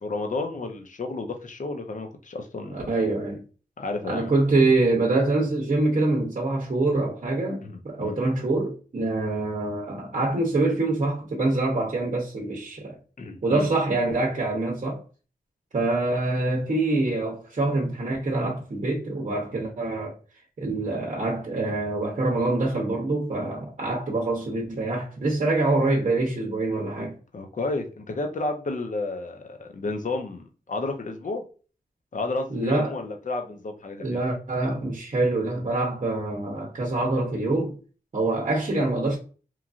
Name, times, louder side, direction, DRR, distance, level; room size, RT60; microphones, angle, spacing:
voice 1, 0.0-3.1 3.8-4.3 7.6-8.2 13.2-13.7 27.3-31.4 32.1-34.2, left 3 dB, 55° left, 0.6 m, -32 dB
voice 2, 2.7-3.4 4.0-13.0 13.4-15.0 15.7-20.2 20.6-27.2 32.5-33.0 34.0-37.8 38.1-39.2, right 2 dB, 50° right, 0.7 m, -25 dB
3.1 x 2.4 x 2.4 m
wide cardioid pair, 75°, 16 cm